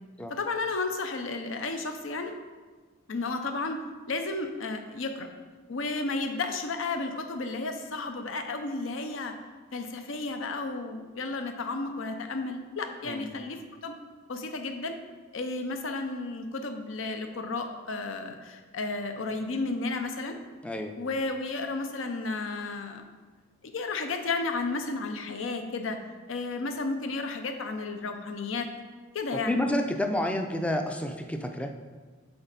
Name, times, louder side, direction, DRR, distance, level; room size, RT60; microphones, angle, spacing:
voice 1, 0.3-2.4 3.1-3.8 4.1-5.3 5.7-9.3 9.7-14.0 14.3-15.0 15.3-20.4 21.0-23.0 23.7-26.0 26.3-28.7 29.1-29.6, left 3 dB, 65° left, 6 dB, 0.6 m, -33 dB
voice 2, 20.6-21.0 29.5-31.7, left 1 dB, 5° left, 5 dB, 0.4 m, -29 dB
7.8 x 4.0 x 4.1 m, 1.4 s
head